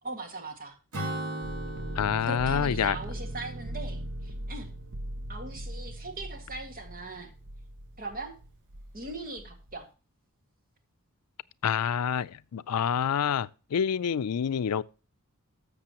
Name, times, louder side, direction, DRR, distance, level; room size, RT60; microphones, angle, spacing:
voice 1, 0.0-0.8 2.3-4.7 5.3-7.3 8.0-8.4 8.9-9.9, right 2 dB, 40° right, 2.0 m, -40 dB
Acoustic guitar / Strum, 0.9-4.6, right 1 dB, 90° right, 3.1 m, -38 dB
sound 1, 1.4-9.8, right 1 dB, 55° right, 0.7 m, -39 dB
voice 2, 2.0-3.0 11.6-14.8, left 8 dB, 85° left, 0.4 m, -27 dB
13.5 x 6.7 x 3.0 m
head